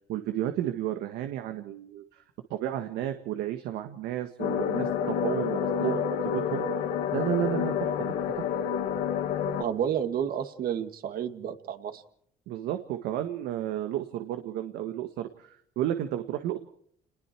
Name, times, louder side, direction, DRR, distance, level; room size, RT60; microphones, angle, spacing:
voice 1, 0.1-2.2 2.5-6.7 7.1-8.5 12.5-16.6, right 12 dB, 85° right, 7 dB, 1.7 m, -32 dB
sound 1, 4.4-9.6, left 8 dB, 80° left, 2.0 m, -29 dB
voice 2, 9.6-12.0, right 9 dB, 60° right, 8 dB, 2.2 m, -30 dB
29.0 x 21.0 x 4.6 m, 0.64 s
cardioid pair, 110°, 17 cm